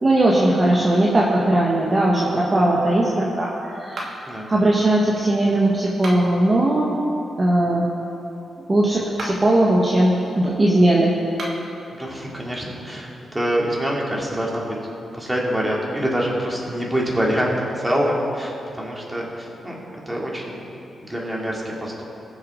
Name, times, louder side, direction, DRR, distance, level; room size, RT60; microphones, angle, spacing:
voice 1, 0.0-4.1 4.5-6.9 7.4-7.9 8.7-11.1, right 1 dB, 30° right, -5 dB, 1.6 m, -18 dB
sound 1, 3.9-4.4 5.9-6.5 9.0-9.6 11.3-11.8, right 1 dB, 65° right, 2.1 m, -34 dB
voice 2, 11.9-14.8 15.1-19.8 20.1-20.6 21.1-22.0, equal, 15° right, -3 dB, 2.8 m, -25 dB
21.0 x 7.2 x 3.9 m, 2.8 s
cardioid pair, 80°, 0 cm